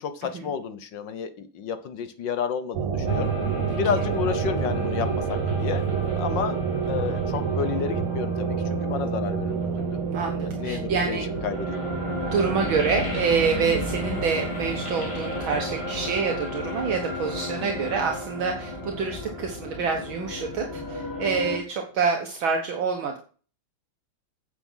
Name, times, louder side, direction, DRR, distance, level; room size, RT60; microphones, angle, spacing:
voice 1, 0.0-3.3 3.8-5.9 6.2-10.0 10.4-11.8 17.6-17.9, left 7 dB, 60° left, 10 dB, 1.6 m, -31 dB
sound 1, 2.7-20.2, right 6 dB, 90° right, 2.2 m, -30 dB
sound 2, 3.1-21.6, left 2 dB, 15° left, 3.9 m, -34 dB
voice 2, 10.1-11.3 12.3-23.2, right 5 dB, 70° right, 3 dB, 2.0 m, -27 dB
9.2 x 7.4 x 5.6 m, 0.39 s
omnidirectional pair, 2.4 m